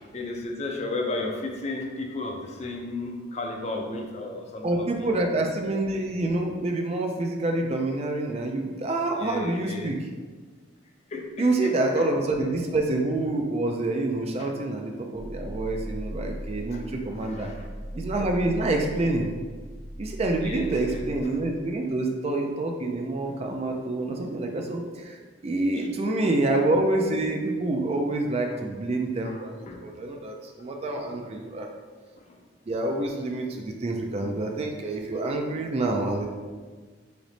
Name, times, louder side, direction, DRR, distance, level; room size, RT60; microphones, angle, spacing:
voice 1, 0.1-5.1 9.2-10.0 11.1-12.1 12.4-12.6 14.4-14.5 16.7-16.8 17.2-17.7 20.4-21.0 25.7-25.9 26.2-26.3 29.2-29.9 30.9-31.2 32.2-32.4, left 2 dB, 35° left, 2 dB, 0.4 m, -34 dB
voice 2, 4.6-10.0 11.4-17.5 17.9-19.3 20.0-31.7 32.7-36.3, right 2 dB, 30° right, 2 dB, 0.3 m, -27 dB
sound 1, 15.1-21.2, equal, ahead, 0.7 m, -38 dB
3.2 x 3.0 x 3.9 m, 1.5 s
head